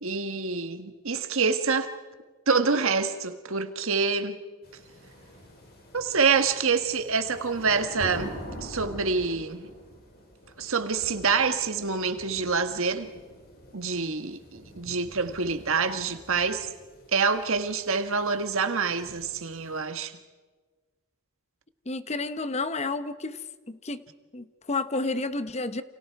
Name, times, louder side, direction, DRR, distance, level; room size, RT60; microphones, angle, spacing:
voice 1, 0.0-1.9 2.5-4.4 5.9-9.7 10.6-13.1 13.7-16.7 17.1-20.2, right 5 dB, 65° right, 1.7 m, -26 dB
sound 1, 4.6-19.8, equal, 45° left, 5.9 m, -45 dB
voice 2, 21.9-23.4 23.7-24.0 24.3-25.8, left 3 dB, 30° left, 0.9 m, -30 dB
30.0 x 28.0 x 4.7 m
head